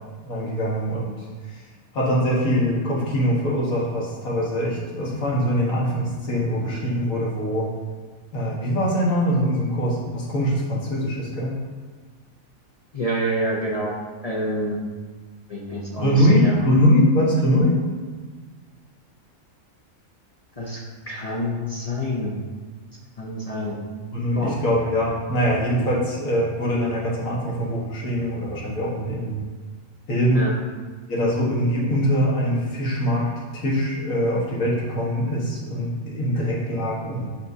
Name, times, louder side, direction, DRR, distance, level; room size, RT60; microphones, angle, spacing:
voice 1, 0.3-1.6 1.9-7.7 8.3-11.5 16.0-17.8 24.1-29.4 30.1-30.5 31.1-37.4, equal, 70° left, -5 dB, 1.8 m, -23 dB
voice 2, 12.9-13.9 14.2-14.8 15.5-16.6 20.6-20.8 21.1-22.3 23.2-23.8 24.4-24.6 30.3-30.5 36.3-36.4, equal, 40° left, -3 dB, 0.5 m, -27 dB
6.4 x 5.3 x 2.7 m, 1.4 s
omnidirectional pair, 1.5 m